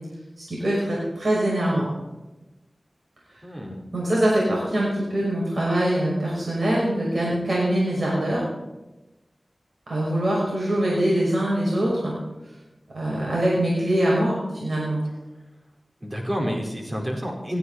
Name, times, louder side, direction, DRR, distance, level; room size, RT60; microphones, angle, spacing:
voice 1, 0.4-1.9 3.3-3.4 3.9-8.5 9.9-12.1 12.9-15.0, right 1 dB, 75° right, -5 dB, 6.1 m, -23 dB
voice 2, 3.4-3.9 16.0-17.6, equal, 35° right, 0 dB, 4.7 m, -29 dB
19.5 x 15.0 x 4.2 m, 1.0 s
wide cardioid pair, 50°, 0 cm